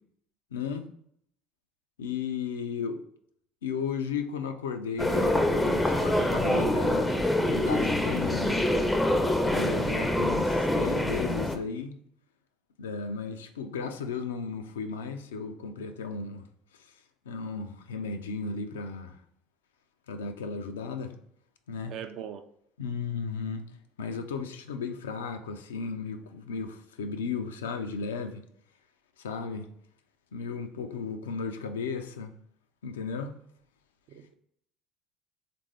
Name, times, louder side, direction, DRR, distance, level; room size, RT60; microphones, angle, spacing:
voice 1, 0.5-0.9 2.0-3.0 3.6-7.1 7.4-8.6 9.4-11.9 12.8-16.5 16.7-16.9 17.3-19.2 20.1-21.2 21.7-21.9 22.8-23.6 24.0-28.4 29.2-29.7 30.3-32.3 32.8-33.4, left 5 dB, 85° left, 0.3 m, -35 dB
sound 1, 5.0-11.6, left 1 dB, 5° left, 0.4 m, -25 dB
voice 2, 21.9-22.4 34.1-34.3, right 9 dB, 55° right, 0.4 m, -40 dB
3.6 x 2.5 x 3.2 m
hypercardioid pair, 70°, 0 cm